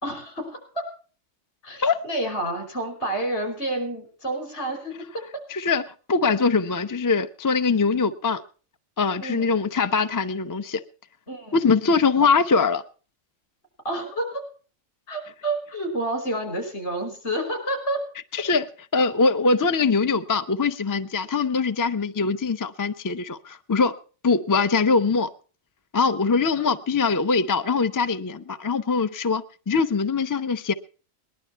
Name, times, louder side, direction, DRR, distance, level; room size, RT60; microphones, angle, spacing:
voice 1, 0.0-0.9 1.6-5.4 9.2-9.5 11.3-11.6 13.8-14.4 15.1-18.0 26.6-26.7, right 1 dB, 55° left, 5.6 m, -29 dB
voice 2, 5.5-8.4 9.0-10.8 11.5-12.8 18.3-18.7 18.9-24.0 24.2-25.3 25.9-30.7, left 4 dB, 35° left, 0.3 m, -22 dB
20.0 x 11.5 x 4.5 m
omnidirectional pair, 1.4 m